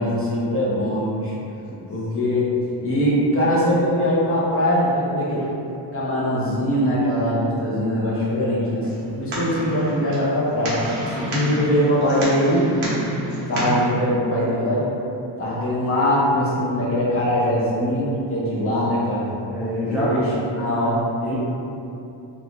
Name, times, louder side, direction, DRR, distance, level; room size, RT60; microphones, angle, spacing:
voice 1, 0.0-1.3 1.9-2.5 2.8-5.5 5.9-8.8 9.2-10.9 11.1-12.7 13.5-14.9 15.4-19.3 19.8-21.0, equal, 30° left, -7 dB, 0.8 m, -22 dB
sound 1, 8.8-13.9, equal, 75° right, 1.1 m, -29 dB
voice 2, 19.5-20.2 21.2-21.4, equal, ahead, -10 dB, 0.3 m, -27 dB
3.0 x 2.3 x 3.7 m, 2.8 s
wide cardioid pair, 155°, 47 cm